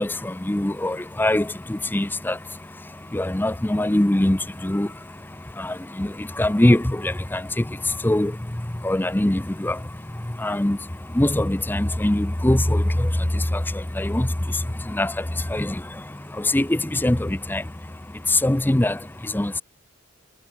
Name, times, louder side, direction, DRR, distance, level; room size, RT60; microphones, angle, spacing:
voice 1, 0.0-2.4 3.1-4.9 5.6-7.4 8.0-8.3 8.8-9.8 10.4-10.8 11.2-13.1 14.0-14.3 14.9-15.1 15.5-15.7 16.5-17.6 18.3-19.0 19.3-19.6, left 1 dB, 10° left, 0.5 m, -22 dB
head